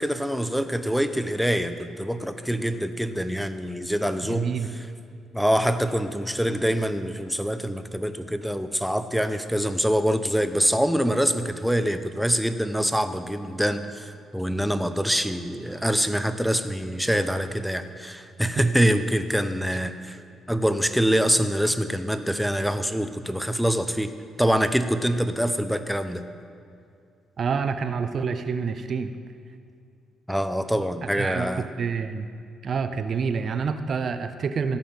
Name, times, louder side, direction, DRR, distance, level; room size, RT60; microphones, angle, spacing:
voice 1, 0.0-4.5 5.3-20.2 20.5-24.1 24.4-26.2 30.3-31.6, equal, ahead, 9 dB, 0.7 m, -25 dB
voice 2, 4.3-4.7 18.6-18.7 27.4-29.1 31.0-32.3 32.6-34.8, right 5 dB, 50° right, 10 dB, 0.7 m, -27 dB
15.5 x 5.7 x 7.3 m, 2.4 s
cardioid pair, 90°, 0 cm